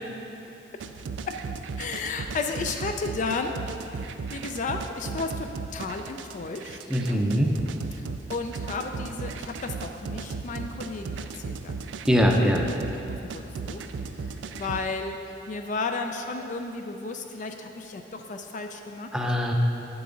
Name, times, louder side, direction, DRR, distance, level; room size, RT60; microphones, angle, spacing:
sound 1, 0.8-14.8, right 4 dB, 90° right, 0.4 m, -36 dB
voice 1, 1.8-3.7 4.3-7.2 8.0-11.8 12.4-12.6 13.2-13.8 14.2-15.2 15.5-19.1, left 3 dB, 45° left, 5 dB, 0.4 m, -33 dB
voice 2, 6.9-7.5 12.1-12.6 19.1-19.5, equal, 5° right, 1 dB, 0.6 m, -22 dB
9.4 x 6.9 x 3.8 m, 2.8 s
head